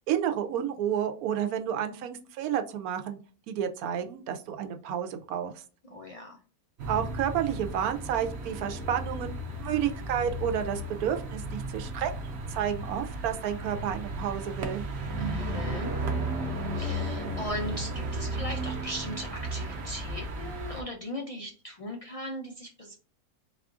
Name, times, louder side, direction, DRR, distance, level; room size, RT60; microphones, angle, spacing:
voice 1, 0.0-3.2 3.5-5.5 6.9-14.8, right 9 dB, 85° right, 7 dB, 1.1 m, -31 dB
voice 2, 5.9-6.4 15.2-15.9 16.7-22.9, equal, 70° left, 0 dB, 0.3 m, -38 dB
sound 1, 6.8-20.8, right 1 dB, 55° right, 0.8 m, -34 dB
4.1 x 2.4 x 3.6 m, 0.38 s
omnidirectional pair, 1.5 m